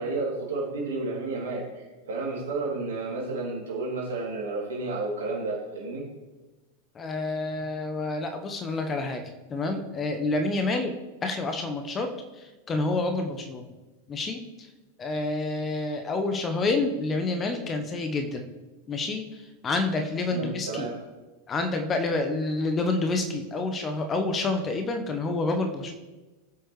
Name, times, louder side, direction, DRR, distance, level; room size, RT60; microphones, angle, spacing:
voice 1, 0.0-6.1 20.3-21.0, right 3 dB, 60° right, -2 dB, 3.0 m, -31 dB
voice 2, 6.9-9.2 9.5-10.9 11.2-12.1 12.4-13.7 14.1-14.4 15.0-18.4 18.9-19.2 19.6-20.9 21.5-25.9, left 2 dB, 20° left, 5 dB, 1.1 m, -28 dB
18.0 x 7.9 x 3.3 m, 1.2 s
figure-of-eight pair, 90°, 0 cm